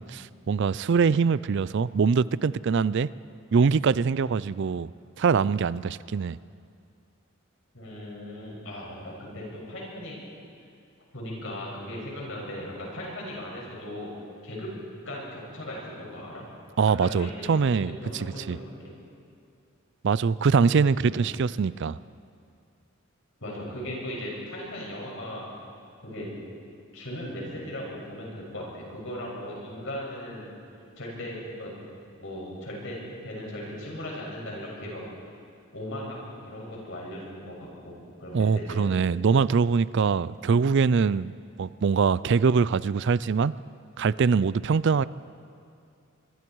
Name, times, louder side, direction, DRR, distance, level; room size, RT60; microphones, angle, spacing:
voice 1, 0.0-3.1 3.5-4.9 5.2-6.4 16.8-18.6 20.0-22.0 38.3-43.5 44.0-45.0, right 5 dB, 60° right, 19 dB, 0.4 m, -23 dB
voice 2, 7.7-10.2 11.1-14.1 14.4-14.7 15.1-16.4 17.0-18.9 21.0-21.2 23.4-25.5 26.0-26.3 26.9-30.5 31.0-31.7 32.2-35.0 35.7-38.9, left 1 dB, 65° left, -3 dB, 7.2 m, -38 dB
25.0 x 23.5 x 4.7 m, 2.5 s
head